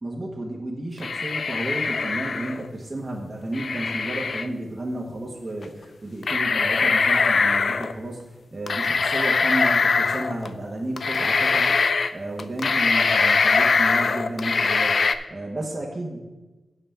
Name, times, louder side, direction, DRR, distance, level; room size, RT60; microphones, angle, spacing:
voice 1, 0.0-16.2, right 1 dB, 30° right, -2 dB, 1.3 m, -32 dB
sound 1, 1.0-2.7 3.5-4.5 5.6-5.7 6.2-7.9 8.7-10.5 11.0-12.1 12.4-15.2, left 4 dB, 60° left, 0.4 m, -22 dB
7.1 x 5.7 x 7.2 m, 1.2 s
wide cardioid pair, 100°, 0 cm